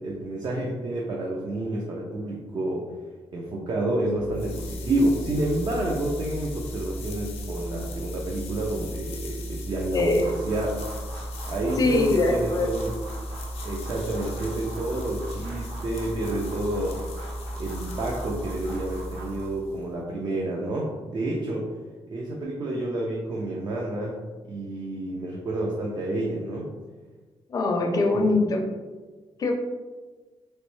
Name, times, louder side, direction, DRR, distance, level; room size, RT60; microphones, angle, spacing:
voice 1, 0.0-2.9 3.3-10.8 11.5-12.9 13.6-17.0 17.6-21.7 22.1-24.2 24.5-26.7, right 1 dB, 45° right, -2 dB, 0.5 m, -29 dB
sound 1, 4.1-19.9, equal, 80° left, 0.6 m, -35 dB
voice 2, 9.9-10.4 11.8-12.7 27.5-28.6 29.4-29.5, left 2 dB, 35° left, 2 dB, 0.5 m, -22 dB
sound 2, 10.1-19.4, right 2 dB, 60° right, 1.2 m, -43 dB
3.1 x 3.0 x 3.1 m, 1.3 s
wide cardioid pair, 150°, 10 cm